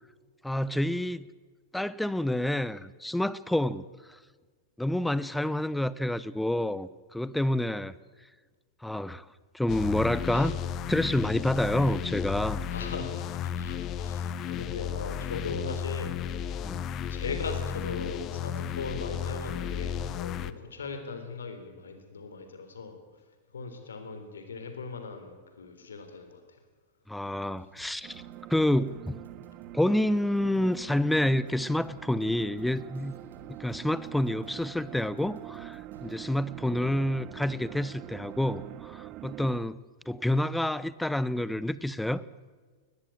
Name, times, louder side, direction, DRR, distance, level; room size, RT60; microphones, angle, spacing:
voice 1, 0.4-1.3 1.7-3.8 4.8-7.9 8.8-9.2 9.5-10.6 10.9-12.7 16.6-16.9 27.1-28.2 28.5-29.2 29.7-33.1 33.6-39.8 40.1-42.2, left 1 dB, 5° left, 0.8 m, -28 dB
sound 1, 9.7-20.5, left 8 dB, 35° left, 0.9 m, -34 dB
voice 2, 12.7-16.2 17.1-23.0 23.5-26.4, left 4 dB, 75° left, 3.6 m, -39 dB
sound 2, 27.5-36.2, right 2 dB, 70° right, 3.3 m, -55 dB
sound 3, 28.0-39.6, right 15 dB, 40° right, 0.5 m, -45 dB
20.5 x 14.0 x 8.9 m
figure-of-eight pair, 100°, 0 cm